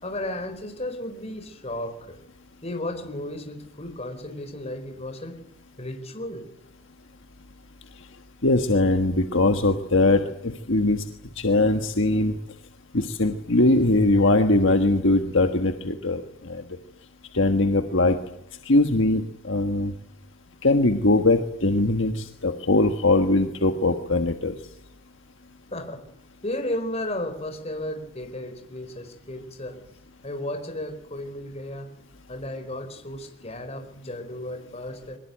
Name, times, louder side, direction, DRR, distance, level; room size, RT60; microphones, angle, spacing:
voice 1, 0.0-2.2 2.6-5.4 5.8-6.5 25.7-26.0 26.4-29.8 30.2-31.9 32.3-35.2, left 1 dB, 30° left, 6 dB, 4.5 m, -34 dB
voice 2, 8.4-11.0 11.4-12.3 12.9-16.6 17.3-18.2 18.6-19.9 20.6-24.5, left 2 dB, 60° left, 6 dB, 1.5 m, -21 dB
23.0 x 20.5 x 9.3 m, 0.79 s
head